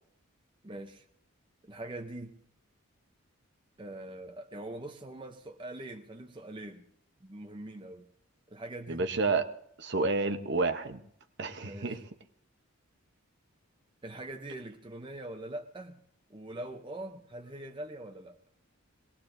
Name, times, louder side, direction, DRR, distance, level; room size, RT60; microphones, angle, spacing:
voice 1, 0.6-1.1 1.6-2.4 3.8-6.9 7.2-8.1 8.5-9.1 11.6-12.0 14.0-16.0 16.3-18.4, right 1 dB, 20° right, 4 dB, 0.6 m, -43 dB
voice 2, 8.9-9.5 9.8-11.0 11.4-12.0, right 3 dB, 50° right, 8 dB, 0.8 m, -29 dB
22.5 x 18.5 x 2.6 m, 0.70 s
head